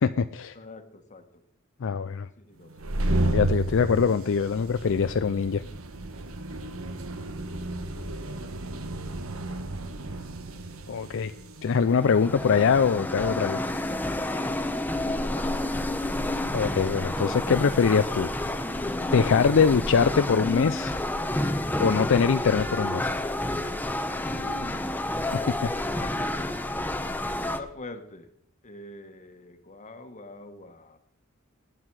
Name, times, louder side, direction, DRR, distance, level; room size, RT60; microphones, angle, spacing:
voice 1, 0.0-0.5 1.8-2.3 3.3-5.6 10.9-11.3 11.6-13.6 16.5-18.3 19.1-20.9 21.8-23.1 25.6-25.7, left 6 dB, 65° left, 11 dB, 0.4 m, -23 dB
voice 2, 0.5-1.4 1.9-2.7 6.6-6.7 7.2-7.5 8.2-8.6 14.9-15.7 24.2-25.3 26.0-28.3 28.6-31.0, left 2 dB, 35° left, 7 dB, 1.4 m, -45 dB
sound 1, 2.7-13.1, right 1 dB, 75° right, 1.2 m, -32 dB
sound 2, 11.8-27.6, left 1 dB, 10° left, 0.8 m, -29 dB
19.0 x 9.3 x 4.8 m, 0.72 s
head